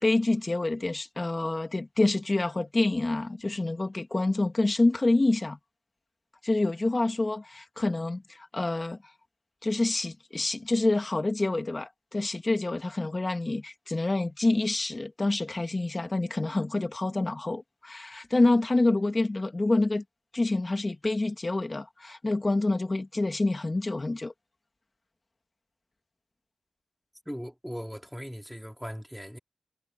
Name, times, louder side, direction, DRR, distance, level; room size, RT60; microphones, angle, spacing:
voice 1, 0.0-5.6 6.4-9.0 9.6-20.0 20.3-24.3, left 2 dB, 30° left, 2.4 m, -27 dB
voice 2, 27.3-29.4, equal, ahead, 3.9 m, -39 dB
cardioid pair, 70°, 0 cm